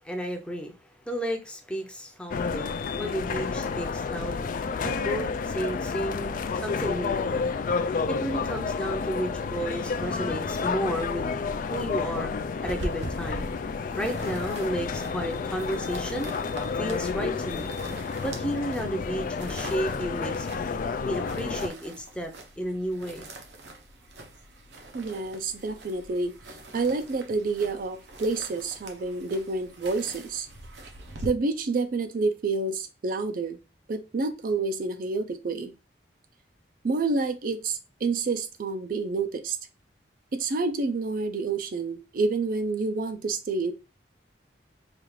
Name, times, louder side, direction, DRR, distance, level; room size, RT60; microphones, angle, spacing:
voice 1, 0.0-0.7 1.1-2.7 3.0-4.5 4.8-7.5 8.1-11.4 11.6-12.3 12.6-13.5 14.0-16.3 16.7-17.7 18.2-20.5 21.0-23.3, equal, 5° left, 0.6 m, -32 dB
sound 1, 2.3-21.7, left 5 dB, 50° left, 0.3 m, -30 dB
sound 2, 12.6-31.3, right 1 dB, 80° right, 0.8 m, -43 dB
voice 2, 24.9-26.3 26.7-30.5 31.2-33.6 33.9-35.7 36.8-39.6 40.3-43.7, right 3 dB, 50° right, 0.4 m, -28 dB
4.9 x 2.4 x 3.1 m
head